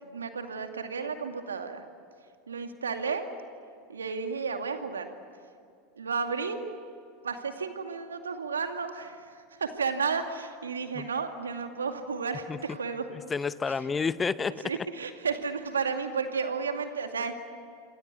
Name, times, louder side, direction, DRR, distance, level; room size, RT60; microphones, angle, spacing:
voice 1, 0.0-1.9 2.5-3.2 3.9-5.1 6.0-6.6 7.2-13.1 13.7-13.8 14.6-17.3, right 5 dB, 80° right, 6 dB, 2.3 m, -32 dB
voice 2, 13.1-14.7, left 5 dB, 20° left, 16 dB, 0.8 m, -30 dB
27.0 x 26.5 x 8.3 m, 2.4 s
figure-of-eight pair, 85°, 0 cm